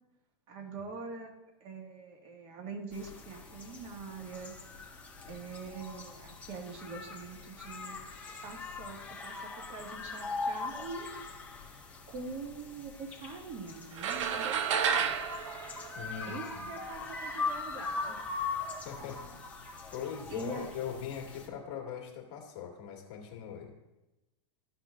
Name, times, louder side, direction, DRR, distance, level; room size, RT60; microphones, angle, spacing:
voice 1, 0.5-1.3 1.6-4.5 5.3-8.0 8.4-11.1 12.1-15.2 16.2-18.2 19.0-19.3 20.3-20.7, right 4 dB, 40° right, 1 dB, 1.9 m, -44 dB
sound 1, 2.9-21.5, left 4 dB, 10° left, 1.5 m, -41 dB
sound 2, 14.0-16.6, right 7 dB, 75° right, 0.8 m, -31 dB
voice 2, 15.9-16.7 18.8-19.2 19.9-23.7, left 8 dB, 40° left, 0 dB, 2.0 m, -40 dB
13.5 x 5.9 x 2.5 m, 1.0 s
hypercardioid pair, 130°, 16 cm